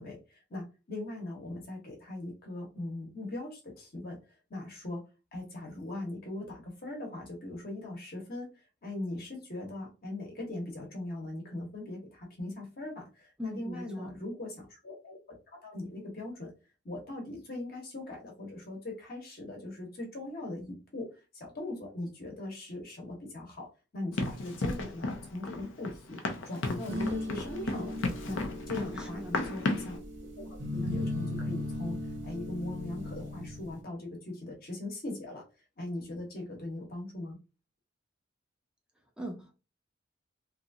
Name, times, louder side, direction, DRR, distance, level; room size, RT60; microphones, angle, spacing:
voice 1, 0.0-5.0 5.3-15.2 15.6-16.5 16.8-23.7 23.9-26.2 26.4-28.0 28.2-30.0 30.4-32.0 32.2-35.4 35.8-37.4, left 2 dB, 50° left, 1 dB, 1.0 m, -40 dB
voice 2, 13.4-14.2 28.7-29.4 39.2-39.5, left 1 dB, 5° right, 1 dB, 0.4 m, -41 dB
Run, 24.2-30.0, left 2 dB, 85° left, 0.5 m, -34 dB
sound 1, 26.9-33.8, left 1 dB, 75° right, 1.0 m, -37 dB
2.8 x 2.4 x 2.6 m, 0.31 s
head